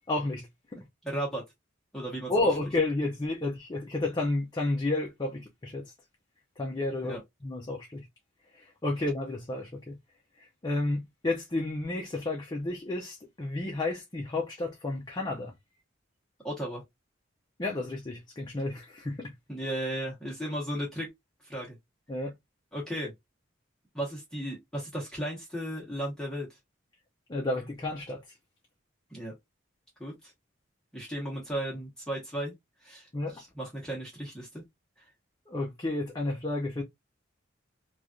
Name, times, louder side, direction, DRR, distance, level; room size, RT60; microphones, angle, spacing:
voice 1, 0.1-0.8 2.3-5.9 6.6-7.2 7.4-8.1 8.5-10.0 10.4-15.5 17.6-19.3 22.1-22.3 27.3-28.2 33.1-33.4 35.5-36.8, left 2 dB, 20° left, 0.5 m, -31 dB
voice 2, 1.0-1.4 1.9-2.5 7.0-7.2 16.4-16.8 19.5-21.1 21.5-21.8 22.7-23.1 23.9-26.5 29.1-29.3 30.0-30.1 30.9-32.5 32.8-34.6 35.0-35.1, right 1 dB, 5° left, 1.0 m, -35 dB
3.1 x 2.4 x 2.5 m
head